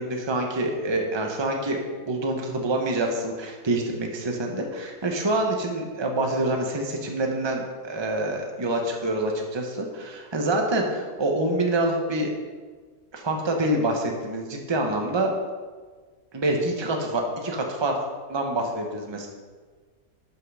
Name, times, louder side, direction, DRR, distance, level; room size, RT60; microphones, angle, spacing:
voice 1, 0.0-12.3 13.1-15.3 16.3-18.0 18.3-19.3, right 2 dB, 20° right, 2 dB, 1.0 m, -26 dB
12.0 x 5.7 x 4.9 m, 1.4 s
omnidirectional pair, 1.9 m